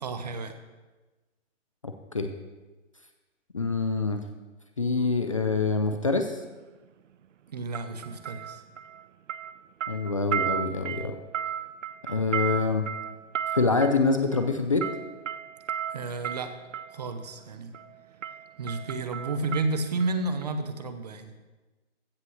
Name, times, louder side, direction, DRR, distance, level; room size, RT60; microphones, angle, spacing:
voice 1, 0.0-0.5 7.5-8.6 15.9-16.6 16.9-17.7 18.6-21.3, right 3 dB, 35° right, 9 dB, 0.9 m, -31 dB
voice 2, 1.8-2.3 3.5-4.2 4.8-6.4 9.9-11.2 12.1-12.9 13.5-14.9, left 4 dB, 30° left, 6 dB, 0.5 m, -25 dB
sound 1, 5.8-6.0 7.7-9.0 9.3-17.0 17.7-18.0 18.2-20.1 20.4-20.5, right 9 dB, 90° right, 0.6 m, -34 dB
15.5 x 5.7 x 6.4 m, 1.2 s
hypercardioid pair, 170°, 36 cm